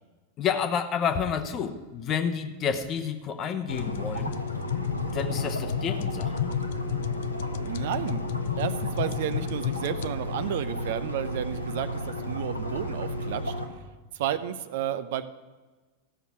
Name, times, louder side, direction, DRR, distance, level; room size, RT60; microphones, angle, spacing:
voice 1, 0.4-4.3 5.1-6.4, left 7 dB, 30° left, 9 dB, 0.9 m, -29 dB
sound 1, 3.7-13.7, equal, 90° left, 1.2 m, -33 dB
sound 2, 3.8-10.1, left 14 dB, 55° left, 0.3 m, -33 dB
voice 2, 7.6-8.2 8.6-13.6 14.1-15.2, right 10 dB, 55° right, 13 dB, 0.5 m, -32 dB
15.0 x 6.7 x 6.1 m, 1.3 s
figure-of-eight pair, 90°, 0 cm